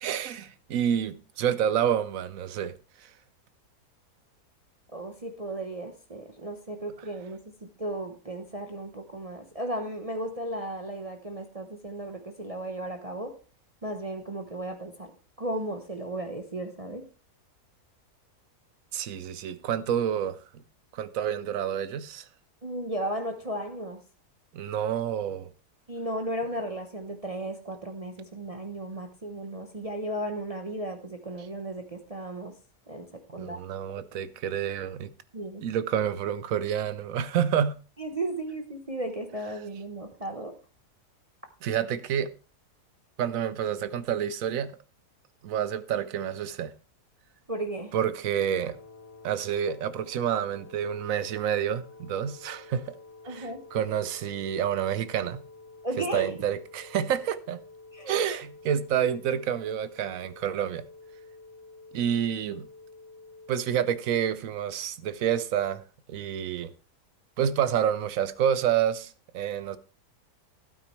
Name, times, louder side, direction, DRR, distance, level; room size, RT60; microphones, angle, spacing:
voice 1, 0.0-2.7 18.9-20.6 20.9-22.2 24.5-25.5 33.4-35.1 35.6-37.8 41.6-42.3 43.2-44.7 45.4-46.7 47.9-48.8 49.2-52.9 53.3-55.4 56.1-57.6 58.1-60.8 61.9-62.7 63.5-65.8 66.1-66.7 67.4-69.8, right 9 dB, 65° right, 1.0 m, -28 dB
voice 2, 4.9-13.3 13.8-15.1 15.4-17.0 22.6-24.0 25.9-32.5 32.9-33.6 35.3-35.6 38.0-40.5 47.5-47.9 53.3-53.6 55.8-56.3 57.9-58.2, right 1 dB, 30° right, 0.7 m, -35 dB
sound 1, 48.3-64.2, left 3 dB, 80° left, 2.1 m, -50 dB
12.0 x 9.1 x 3.1 m
omnidirectional pair, 1.7 m